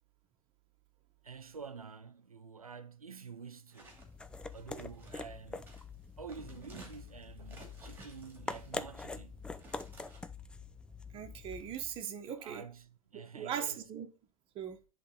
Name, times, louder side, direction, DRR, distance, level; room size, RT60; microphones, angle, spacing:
voice 1, 1.2-4.0 4.5-5.8 6.2-9.4 12.3-13.8, right 5 dB, 90° right, 0.8 m, -49 dB
sound 1, 3.7-5.3 5.7-5.9 6.3-9.0 9.4-10.2, right 2 dB, 10° right, 2.6 m, -55 dB
sound 2, 3.8-12.0, left 3 dB, 5° left, 0.3 m, -45 dB
voice 2, 11.1-12.6 13.3-14.1 14.5-14.8, right 8 dB, 30° right, 1.2 m, -39 dB
10.5 x 3.5 x 3.9 m
figure-of-eight pair, 100°, 18 cm